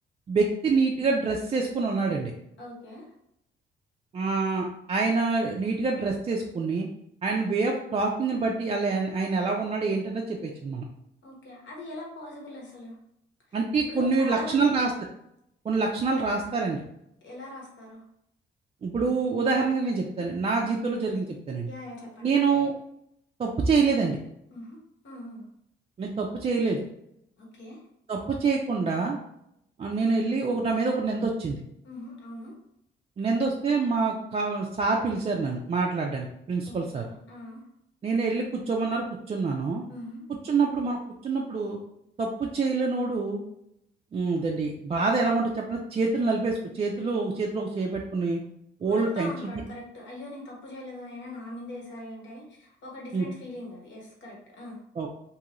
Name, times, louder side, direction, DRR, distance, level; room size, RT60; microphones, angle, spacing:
voice 1, 0.3-2.3 4.1-6.9 7.2-10.8 13.5-14.9 15.6-16.8 18.8-21.7 22.2-22.7 23.4-24.2 26.0-26.8 28.1-29.2 29.8-31.6 33.2-37.0 38.0-39.8 40.4-41.0 41.2-41.8 42.2-43.4 44.1-48.4 48.8-49.6 53.1-53.3 55.0-55.1, right 4 dB, 30° right, -1 dB, 0.4 m, -26 dB
voice 2, 2.6-3.1 11.2-13.0 13.9-14.8 17.2-18.0 20.6-21.0 21.7-22.3 24.5-24.8 25.0-25.4 27.4-27.8 31.8-32.5 36.7-37.6 39.9-40.2 48.8-54.8, left 1 dB, 65° left, -2 dB, 1.2 m, -41 dB
2.7 x 2.4 x 2.9 m, 0.78 s
cardioid pair, 90°, 20 cm